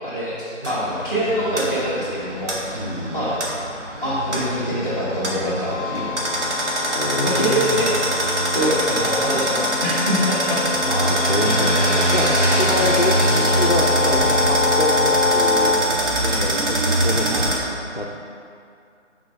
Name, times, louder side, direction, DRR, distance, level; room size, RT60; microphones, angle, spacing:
voice 1, 0.0-2.8 3.1-3.3 4.0-6.2 7.2-7.9 8.5-10.6 11.0-11.2, equal, 15° right, -7 dB, 1.0 m, -24 dB
sound 1, 0.6-17.6, right 1 dB, 65° right, 1.5 m, -23 dB
voice 2, 2.7-3.2 6.8-7.7 10.8-18.1, left 1 dB, 45° left, -2 dB, 0.5 m, -26 dB
sound 2, 5.7-15.7, left 4 dB, 45° right, 1.4 m, -25 dB
5.1 x 4.0 x 5.7 m, 2.4 s
figure-of-eight pair, 175°, 38 cm